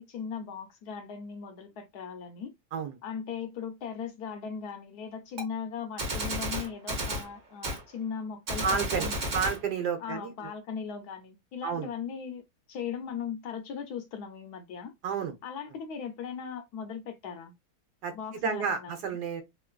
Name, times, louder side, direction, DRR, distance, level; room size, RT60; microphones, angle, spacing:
voice 1, 0.0-2.5 3.0-9.4 10.0-14.9 15.4-17.5 18.1-19.2, left 6 dB, 70° left, 1.0 m, -38 dB
Gunshot gunfire, 5.4-5.5 6.0-7.3 7.6-7.8 8.5-9.6, right 1 dB, 50° right, 1.2 m, -32 dB
voice 2, 8.6-9.1 9.3-10.5 11.6-11.9 15.0-15.3 18.0-18.1 18.4-19.4, right 6 dB, 70° right, 1.2 m, -30 dB
3.1 x 2.5 x 2.2 m
omnidirectional pair, 1.9 m